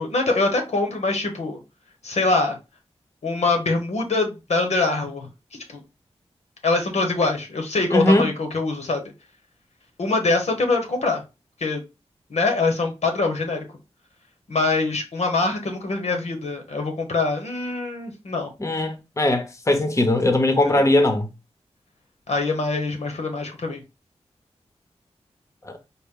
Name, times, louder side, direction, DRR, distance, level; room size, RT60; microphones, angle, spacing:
voice 1, 0.0-1.6 2.0-2.6 3.2-5.3 5.7-5.8 6.6-9.1 10.0-11.2 11.6-11.8 12.3-13.6 14.5-18.5 20.7-20.9 22.3-23.8, left 3 dB, 75° left, 1.0 m, -24 dB
voice 2, 7.9-8.3 18.6-21.3 25.6-25.8, left 1 dB, 25° left, 0.8 m, -20 dB
4.2 x 2.2 x 3.7 m
wide cardioid pair, 65°, 11 cm